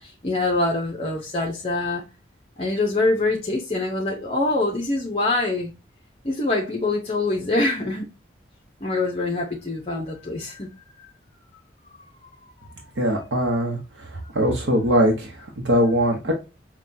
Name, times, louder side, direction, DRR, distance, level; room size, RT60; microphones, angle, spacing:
voice 1, 0.0-2.0 2.6-5.7 6.2-8.1 8.8-10.7 12.0-12.1, left 2 dB, 35° left, 0.7 m, -24 dB
voice 2, 13.0-14.1 14.3-16.3, equal, 90° right, 0.9 m, -21 dB
5.9 x 2.3 x 2.6 m
head